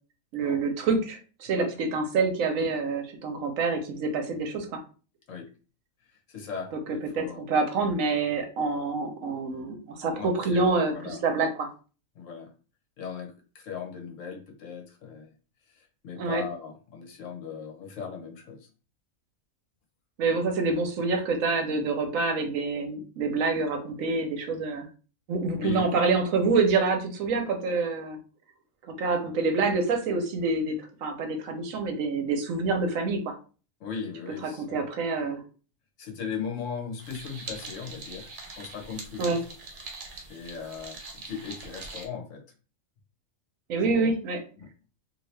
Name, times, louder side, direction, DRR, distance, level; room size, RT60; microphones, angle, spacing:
voice 1, 0.3-4.8 7.1-11.7 16.2-16.4 20.2-24.9 25.3-28.2 29.0-33.3 34.6-35.4 39.2-39.4 43.7-44.4, right 4 dB, 75° right, 5 dB, 1.1 m, -27 dB
voice 2, 1.5-1.8 2.6-2.7 5.3-5.5 6.1-7.5 10.1-10.6 10.9-11.2 12.1-12.5 13.0-15.3 15.7-18.7 25.6-25.9 33.8-34.8 36.0-39.4 40.3-42.4 43.9-44.1 44.6-44.7, left 6 dB, 65° left, 3 dB, 1.1 m, -38 dB
sound 1, 37.0-42.1, right 3 dB, 60° right, 1.1 m, -42 dB
2.8 x 2.7 x 3.2 m, 0.37 s
omnidirectional pair, 1.5 m